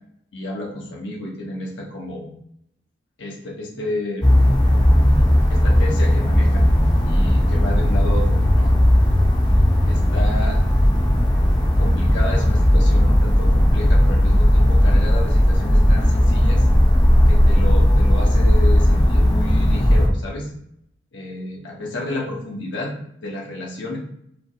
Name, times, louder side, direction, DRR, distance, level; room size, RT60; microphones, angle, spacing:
voice 1, 0.3-2.3 3.2-4.3 5.5-6.7 7.1-8.8 9.8-10.6 11.8-16.7 17.3-20.5 21.1-22.9 23.2-24.0, left 1 dB, 75° left, -2 dB, 1.0 m, -31 dB
sound 1, 4.2-20.1, equal, 25° left, 0.8 m, -16 dB
5.0 x 2.0 x 4.5 m, 0.72 s
head